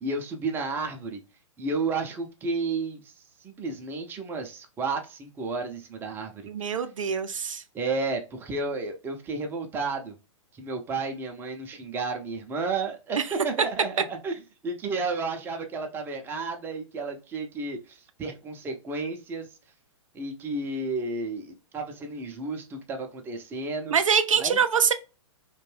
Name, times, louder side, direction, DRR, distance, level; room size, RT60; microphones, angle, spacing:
voice 1, 0.0-1.2 1.6-6.5 7.7-10.1 10.5-19.5 20.1-24.0 24.4-24.6, right 3 dB, 15° right, 0.4 m, -32 dB
voice 2, 6.5-7.6 23.9-24.9, right 7 dB, 85° right, 0.4 m, -24 dB
2.5 x 2.2 x 3.1 m
hypercardioid pair, 120°, 16 cm